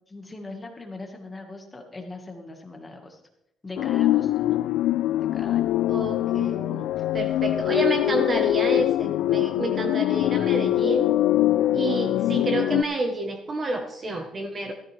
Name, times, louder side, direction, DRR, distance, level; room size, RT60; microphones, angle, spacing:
voice 1, 0.1-3.2 3.6-4.6 5.3-5.7 7.0-7.1 8.0-8.2, left 2 dB, 15° left, 3 dB, 1.5 m, -40 dB
sound 1, 3.8-12.8, left 14 dB, 80° left, 0.4 m, -23 dB
voice 2, 5.9-11.1 11.7-14.7, right 2 dB, 25° right, 5 dB, 1.0 m, -29 dB
14.5 x 13.5 x 3.3 m, 0.82 s
cardioid pair, 175°, 0 cm